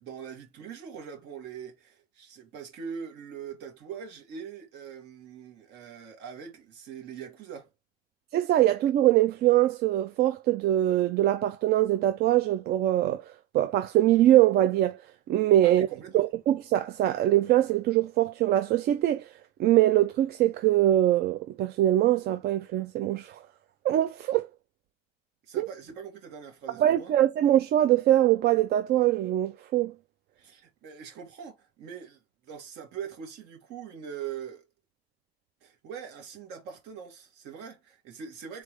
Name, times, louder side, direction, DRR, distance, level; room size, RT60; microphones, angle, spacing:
voice 1, 0.0-7.7 15.6-16.3 25.5-27.1 30.4-34.6 35.6-38.6, right 7 dB, 85° right, 1.9 m, -42 dB
voice 2, 8.3-13.3 13.5-15.0 15.3-15.9 16.1-19.3 19.6-23.4 23.8-24.5 25.6-25.7 26.8-29.9, right 13 dB, 70° right, 0.5 m, -23 dB
4.0 x 3.4 x 3.1 m
cardioid pair, 110°, 17 cm